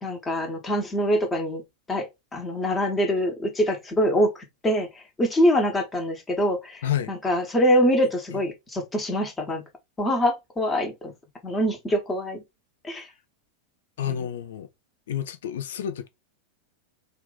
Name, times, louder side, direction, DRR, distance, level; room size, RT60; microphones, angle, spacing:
voice 1, 0.0-1.6 1.9-9.6 10.0-11.1 11.4-12.4 12.8-13.0 14.0-14.2, equal, 15° left, 1.1 m, -24 dB
voice 2, 6.8-7.1 8.3-8.4 14.0-14.7 15.1-16.1, left 10 dB, 60° left, 0.5 m, -29 dB
2.9 x 2.5 x 3.8 m
figure-of-eight pair, 90°, 0 cm